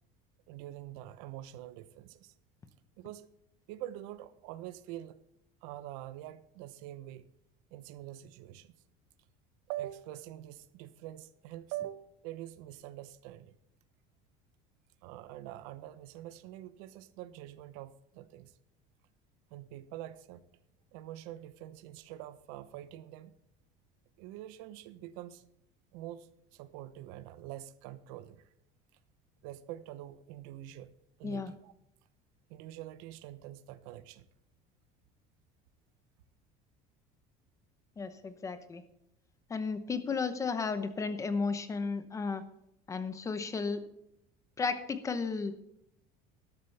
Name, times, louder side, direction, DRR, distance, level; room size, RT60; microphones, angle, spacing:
voice 1, 0.5-2.3 3.0-3.3 3.7-5.2 5.6-7.3 7.7-8.7 9.7-13.6 15.0-18.5 19.5-20.4 20.9-23.3 24.2-25.4 25.9-28.4 29.4-31.7 32.5-34.3, right 13 dB, 85° right, 14 dB, 0.9 m, -45 dB
voice 2, 38.0-38.8 39.5-42.4 42.9-43.8 44.6-45.5, left 4 dB, 15° left, 11 dB, 0.9 m, -34 dB
12.5 x 11.5 x 3.4 m, 0.80 s
cardioid pair, 165°, 18 cm